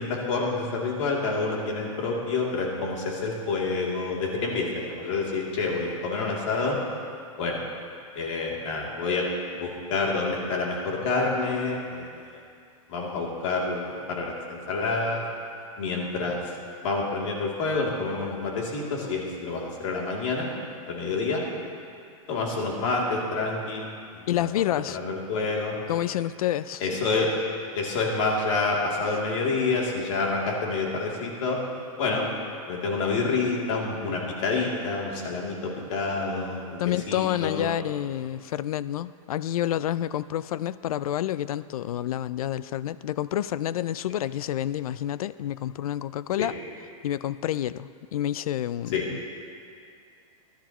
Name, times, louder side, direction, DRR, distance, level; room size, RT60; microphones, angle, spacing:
voice 1, 0.0-6.8 7.4-7.6 8.1-9.3 9.5-12.3 12.9-15.2 15.8-16.4 16.8-20.5 20.9-21.4 22.3-23.9 24.1-24.5 24.9-25.7 26.8-27.3 27.7-31.6 32.0-32.3 32.7-36.8 37.1-37.7 46.4-46.5 48.9-49.0, left 3 dB, 60° left, -2 dB, 2.9 m, -28 dB
voice 2, 24.3-25.0 25.9-26.8 36.8-46.5 47.0-49.2, left 12 dB, 85° left, 16 dB, 0.5 m, -29 dB
22.0 x 11.5 x 3.0 m, 2.4 s
supercardioid pair, 155°, 18 cm